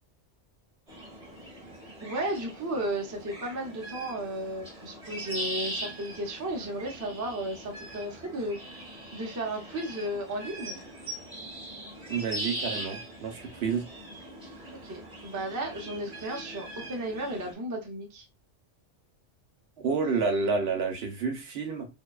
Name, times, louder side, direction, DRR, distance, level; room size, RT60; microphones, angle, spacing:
sound 1, 0.9-17.5, right 1 dB, 5° right, 1.0 m, -41 dB
voice 1, 2.0-10.8 14.7-18.3, right 1 dB, 30° right, 0.3 m, -34 dB
voice 2, 12.1-13.8 19.8-21.9, right 5 dB, 65° right, 0.8 m, -29 dB
2.6 x 2.1 x 2.3 m
omnidirectional pair, 1.2 m